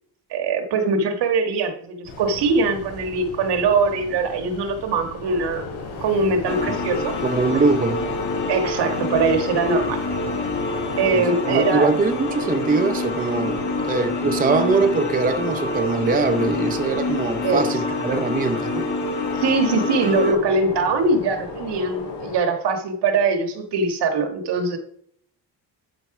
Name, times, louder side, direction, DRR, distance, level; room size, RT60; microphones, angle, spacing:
voice 1, 0.3-5.7 6.0-7.1 8.5-10.0 11.0-11.9 17.4-17.7 19.4-24.8, right 3 dB, 80° right, 1.6 m, -22 dB
sound 1, 2.0-11.1, left 3 dB, 65° left, 3.3 m, -38 dB
sound 2, 5.2-22.4, left 4 dB, 80° left, 3.3 m, -35 dB
sound 3, 6.5-20.3, left 2 dB, 45° left, 2.2 m, -27 dB
voice 2, 7.2-8.1 11.1-18.9, right 4 dB, 20° right, 0.6 m, -22 dB
12.5 x 4.4 x 4.8 m
cardioid pair, 165°, 41 cm